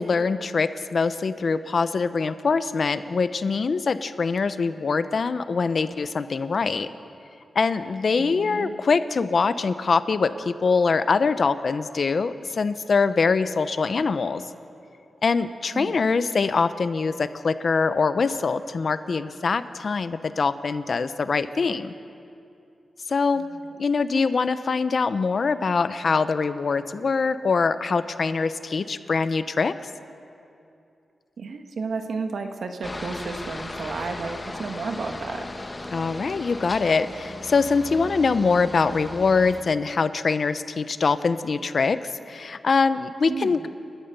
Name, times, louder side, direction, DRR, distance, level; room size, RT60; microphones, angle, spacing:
voice 1, 0.0-6.9 7.5-14.4 15.2-21.9 23.1-23.4 23.8-29.7 35.9-43.7, left 4 dB, 55° left, 12 dB, 0.8 m, -23 dB
voice 2, 8.2-8.8 15.7-16.0 23.3-23.6 31.4-35.5 43.3-43.6, right 4 dB, 75° right, 5 dB, 1.7 m, -32 dB
Aircraft, 32.8-39.6, left 2 dB, 25° left, 1.1 m, -37 dB
30.0 x 12.5 x 6.9 m, 2.6 s
wide cardioid pair, 90°, 0 cm